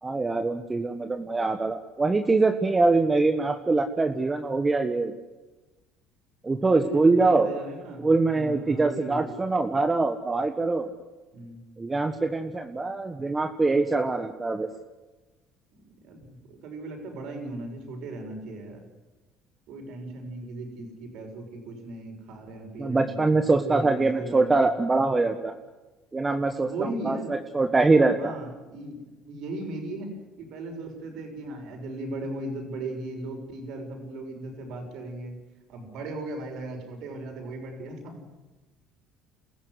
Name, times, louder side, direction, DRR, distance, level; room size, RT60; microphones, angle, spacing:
voice 1, 0.0-5.1 6.4-7.5 8.0-10.9 11.8-14.7 22.8-25.5 26.1-26.7 27.0-28.3, right 3 dB, 20° right, 6 dB, 1.5 m, -23 dB
voice 2, 6.4-9.3 11.3-11.6 15.7-18.8 19.7-23.1 23.6-24.6 26.6-27.3 28.1-30.1 30.4-35.4 35.7-38.2, right 2 dB, 70° right, 4 dB, 6.5 m, -37 dB
27.0 x 14.5 x 9.8 m, 1.2 s
supercardioid pair, 90°, 0 cm